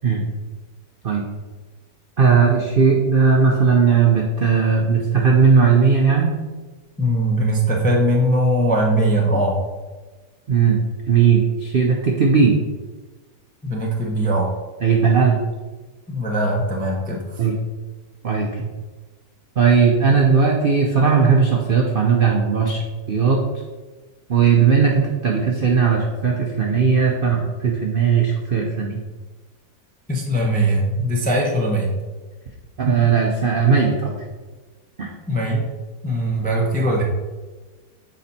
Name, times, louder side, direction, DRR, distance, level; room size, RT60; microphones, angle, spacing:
voice 1, 2.2-6.3 10.5-10.8 11.1-12.5 14.8-15.4 17.4-17.6 18.2-18.7 19.6-22.8 23.1-23.4 24.3-29.0 32.8-34.1 35.0-35.1, right 5 dB, 75° right, 0 dB, 0.5 m, -17 dB
voice 2, 7.0-9.6 13.6-14.5 16.1-17.4 30.1-31.9 35.3-35.6 36.0-37.0, right 1 dB, 10° left, -1 dB, 0.3 m, -20 dB
7.1 x 4.2 x 4.1 m, 1.2 s
omnidirectional pair, 1.9 m